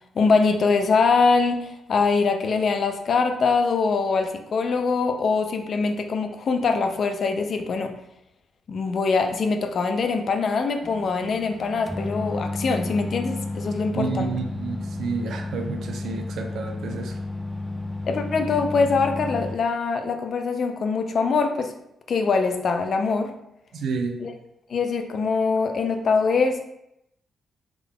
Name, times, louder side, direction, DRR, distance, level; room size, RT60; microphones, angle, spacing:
voice 1, 0.2-7.9 8.7-14.3 18.1-21.7 22.1-23.3 24.2-24.3 24.7-26.6, left 4 dB, 60° left, 6 dB, 0.4 m, -23 dB
sound 1, 10.8-19.6, left 2 dB, ahead, 0.4 m, -32 dB
voice 2, 13.9-17.1 23.7-24.1, right 4 dB, 75° right, 4 dB, 0.6 m, -30 dB
3.6 x 3.5 x 2.3 m, 0.81 s
supercardioid pair, 60°, 0 cm